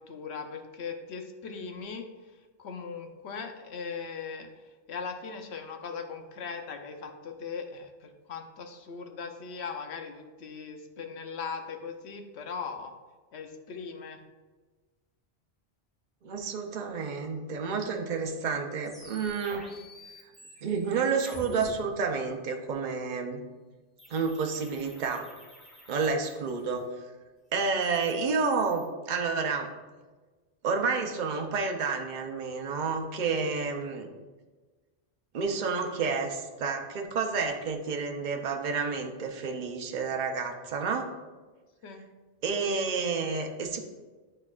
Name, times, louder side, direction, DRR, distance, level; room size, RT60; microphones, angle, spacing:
voice 1, 0.1-2.1 2.6-4.5 4.9-12.9 13.3-14.2 41.8-42.0, left 5 dB, 75° left, 5 dB, 1.0 m, -39 dB
voice 2, 16.2-19.7 20.6-23.4 24.1-25.3 25.9-26.8 27.5-29.7 30.6-34.1 35.3-41.1 42.4-43.8, right 5 dB, 50° right, 4 dB, 0.7 m, -30 dB
sound 1, 18.8-21.7 24.0-26.8 27.6-28.9, equal, ahead, 1.5 m, -48 dB
9.3 x 4.4 x 2.4 m, 1.3 s
omnidirectional pair, 1.1 m